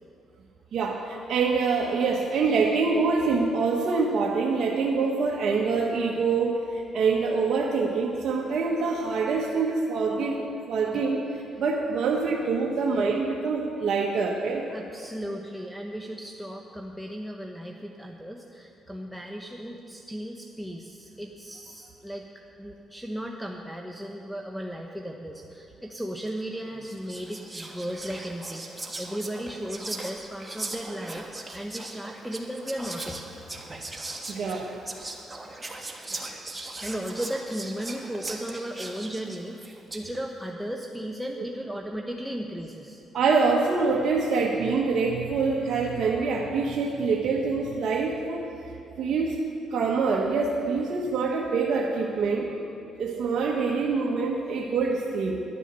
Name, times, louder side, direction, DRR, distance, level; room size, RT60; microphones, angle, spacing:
voice 1, 0.7-11.2 11.6-14.7 34.3-34.7 43.1-48.5 49.0-49.4 49.7-52.5 53.0-55.4, right 4 dB, 65° right, -1 dB, 1.0 m, -25 dB
voice 2, 14.7-22.3 22.6-31.3 31.5-33.4 35.6-35.7 36.5-43.0, equal, ahead, 1 dB, 0.9 m, -36 dB
Whispering, 26.3-26.5 26.8-40.1, right 2 dB, 20° right, 1.4 m, -39 dB
11.0 x 9.9 x 6.8 m, 2.7 s
cardioid pair, 75°, 0 cm